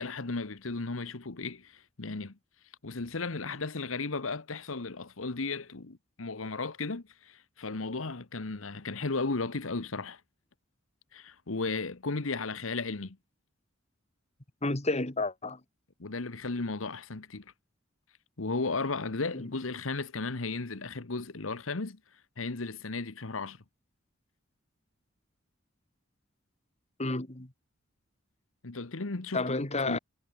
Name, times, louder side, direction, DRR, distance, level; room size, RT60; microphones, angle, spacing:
voice 1, 0.0-2.3 2.8-10.2 11.1-13.2 16.0-17.4 18.4-22.0 22.4-23.6 28.6-30.0, left 3 dB, 85° left, 1.3 m, -35 dB
voice 2, 14.6-15.6 19.3-19.4 27.0-27.5 29.3-30.0, left 2 dB, 35° left, 2.3 m, -31 dB
head